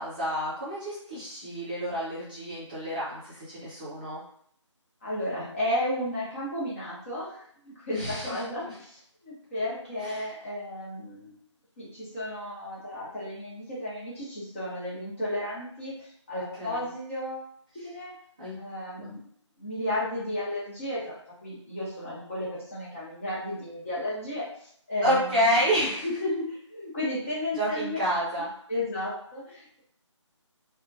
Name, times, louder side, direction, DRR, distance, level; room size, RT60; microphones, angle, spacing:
voice 1, 0.0-4.2 7.9-8.8 10.0-10.3 16.6-16.9 18.4-18.6 19.0-19.1 25.0-26.0 27.5-28.5, equal, 15° right, -9 dB, 0.7 m, -29 dB
voice 2, 5.0-7.4 7.6-11.3 11.8-17.5 17.8-18.1 18.6-19.2 19.6-21.1 21.4-24.5 24.9-25.4 26.0-28.0 28.7-29.8, left 1 dB, 25° left, -8 dB, 1.1 m, -33 dB
2.7 x 2.3 x 2.6 m, 0.63 s
figure-of-eight pair, 160°, 16 cm